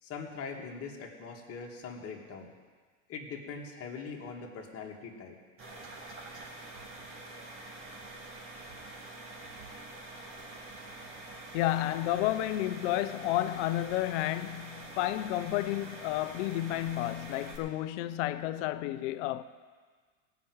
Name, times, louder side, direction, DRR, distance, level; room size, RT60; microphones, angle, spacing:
voice 1, 0.0-2.5 3.1-5.4, left 5 dB, 35° left, 2.4 m, -42 dB
sound 1, 5.6-17.6, right 2 dB, 35° right, 2.7 m, -46 dB
voice 2, 11.5-19.4, left 14 dB, 65° left, 0.8 m, -31 dB
18.0 x 6.1 x 8.0 m
supercardioid pair, 120°, 39 cm